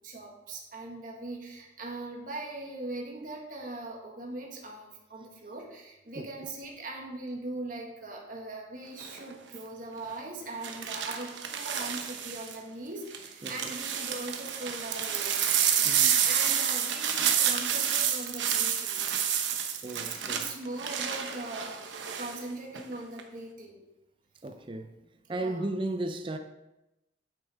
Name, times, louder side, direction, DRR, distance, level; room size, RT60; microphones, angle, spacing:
voice 1, 0.0-15.6 16.2-19.0 20.3-23.8 25.4-25.7, right 2 dB, 45° right, 1.6 m, -40 dB
sound 1, 9.0-9.3 10.6-12.6 13.1-22.4 22.7-23.2, right 8 dB, 80° right, 1.0 m, -29 dB
voice 2, 15.8-16.3 19.8-20.4 24.4-24.9 25.3-26.4, right 2 dB, 25° right, 0.5 m, -35 dB
9.1 x 8.7 x 3.5 m
head